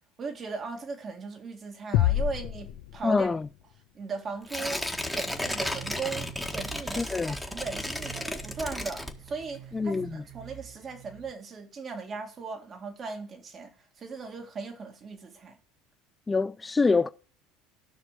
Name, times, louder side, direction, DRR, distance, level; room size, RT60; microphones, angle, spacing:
voice 1, 0.2-3.3 3.9-4.8 5.1-15.6, right 4 dB, 40° right, 2.1 m, -38 dB
sound 1, 1.9-3.7, left 12 dB, 65° left, 0.9 m, -27 dB
voice 2, 3.0-3.5 7.0-7.4 9.7-10.2 16.3-17.1, left 4 dB, 20° left, 0.4 m, -25 dB
Tearing, 4.5-9.6 9.9-10.0, left 1 dB, ahead, 1.6 m, -34 dB
sound 2, 5.2-11.3, right 10 dB, 55° right, 0.9 m, -47 dB
12.5 x 6.1 x 4.9 m
hypercardioid pair, 75°, 0 cm